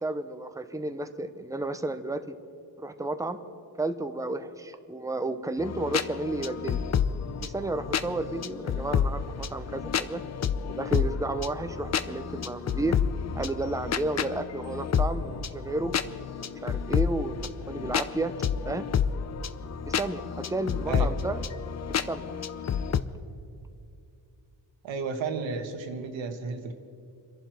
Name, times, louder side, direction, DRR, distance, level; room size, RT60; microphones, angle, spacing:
voice 1, 0.0-2.4 2.8-3.4 3.8-6.9 7.4-10.2 10.7-13.0 13.3-15.9 16.4-17.4 17.7-18.3 18.6-18.9 19.9-21.4 22.0-22.3, right 2 dB, 5° right, 9 dB, 0.8 m, -32 dB
sound 1, 5.6-23.0, left 7 dB, 40° left, 0.6 m, -30 dB
voice 2, 20.9-21.2 24.8-26.7, right 4 dB, 85° right, 5 dB, 1.6 m, -33 dB
27.0 x 11.0 x 4.6 m, 2.5 s
cardioid pair, 110°, 44 cm